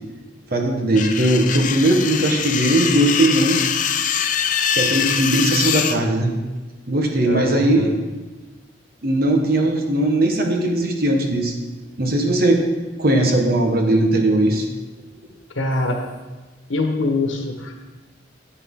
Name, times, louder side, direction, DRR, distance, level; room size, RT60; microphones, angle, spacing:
voice 1, 0.5-3.7 4.7-6.3 6.9-8.0 9.0-11.5 12.0-12.7 13.0-14.7, right 1 dB, 50° right, 3 dB, 1.3 m, -19 dB
sound 1, 1.0-6.0, left 8 dB, 40° left, 0.5 m, -23 dB
voice 2, 7.3-7.9 15.5-16.0 16.7-17.7, left 2 dB, 90° left, 3 dB, 1.5 m, -23 dB
10.0 x 8.4 x 3.8 m, 1.2 s
head